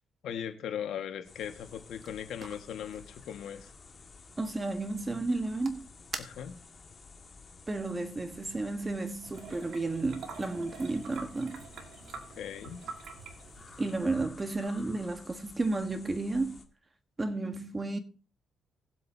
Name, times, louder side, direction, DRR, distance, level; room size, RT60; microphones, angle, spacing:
voice 1, 0.2-3.7 6.2-6.5 12.4-12.8, left 9 dB, 75° left, 1.6 m, -38 dB
sound 1, 1.2-16.6, left 4 dB, 35° left, 1.8 m, -53 dB
sound 2, 1.7-6.9, right 4 dB, 45° right, 1.4 m, -49 dB
voice 2, 4.4-5.9 7.7-11.7 13.8-16.6 17.2-18.0, right 2 dB, 20° right, 1.4 m, -32 dB
sound 3, 9.2-14.3, right 5 dB, 65° right, 2.1 m, -47 dB
19.5 x 7.8 x 2.8 m
cardioid pair, 90°, 0 cm